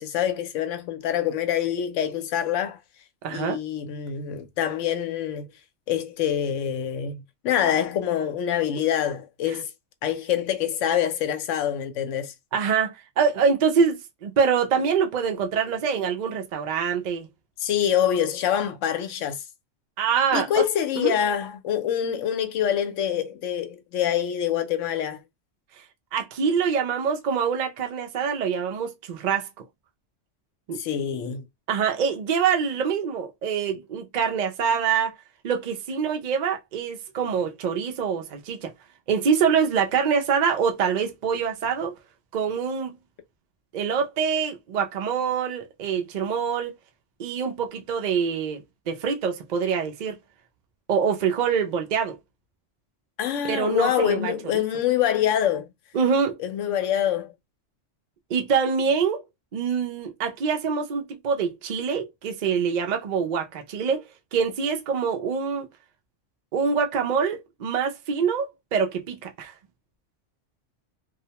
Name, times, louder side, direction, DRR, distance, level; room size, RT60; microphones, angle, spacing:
voice 1, 0.0-2.8 3.3-5.5 5.9-9.7 10.0-12.3 17.6-19.4 20.3-25.2 30.7-31.4 53.2-55.7 56.4-57.3, left 10 dB, 80° left, 0.9 m, -25 dB
voice 2, 3.2-3.6 12.5-17.3 20.0-20.6 21.0-21.1 26.1-29.6 30.7-30.8 31.7-35.1 35.4-38.7 39.1-41.9 42.3-42.9 43.7-46.7 47.2-48.6 48.9-50.2 50.9-52.2 53.4-54.6 55.9-56.4 58.3-59.2 59.5-64.0 64.3-65.7 66.5-69.5, right 6 dB, 60° right, 0.4 m, -25 dB
2.4 x 2.1 x 2.8 m
omnidirectional pair, 1.3 m